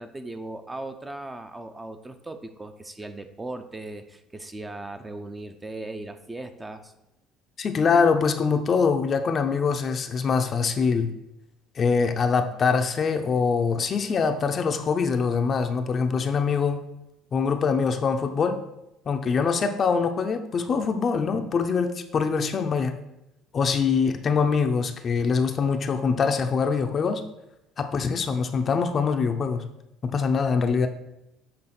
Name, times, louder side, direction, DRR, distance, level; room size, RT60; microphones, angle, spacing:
voice 1, 0.0-6.9, right 2 dB, 15° right, 7 dB, 0.6 m, -38 dB
voice 2, 7.6-11.1 11.8-16.8 17.3-18.6 19.1-23.0 23.5-27.2 27.8-29.6 30.0-30.9, left 5 dB, 40° left, 7 dB, 0.6 m, -24 dB
7.7 x 3.5 x 5.9 m, 0.90 s
cardioid pair, 105°, 0 cm